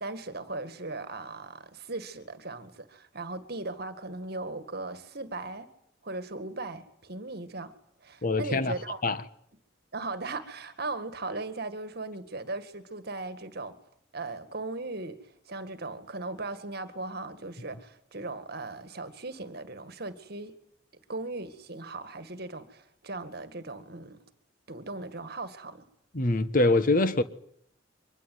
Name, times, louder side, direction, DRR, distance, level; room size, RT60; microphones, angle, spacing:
voice 1, 0.0-5.7 6.0-7.7 8.0-9.1 9.9-13.8 14.1-15.2 15.5-20.5 21.1-24.2 24.7-25.9, right 2 dB, 60° right, 2.0 m, -38 dB
voice 2, 8.2-8.7 9.0-9.2 26.1-27.2, left 2 dB, 50° left, 1.4 m, -24 dB
24.5 x 21.5 x 9.5 m
head